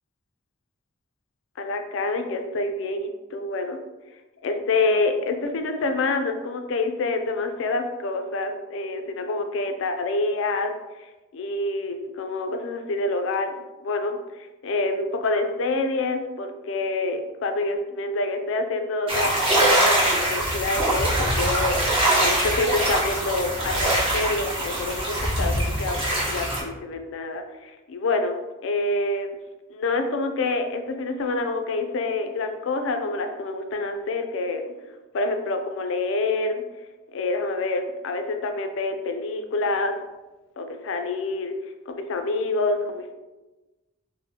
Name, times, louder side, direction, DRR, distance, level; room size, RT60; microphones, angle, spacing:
voice 1, 1.6-3.8 4.4-10.7 11.0-21.8 22.2-29.4 29.7-34.6 35.1-36.6 37.1-39.9 40.6-41.5 41.9-43.1, left 2 dB, 65° left, 6 dB, 0.4 m, -27 dB
sound 1, 19.1-26.6, right 1 dB, 25° right, 0.8 m, -23 dB
4.1 x 2.1 x 2.7 m, 1.1 s
head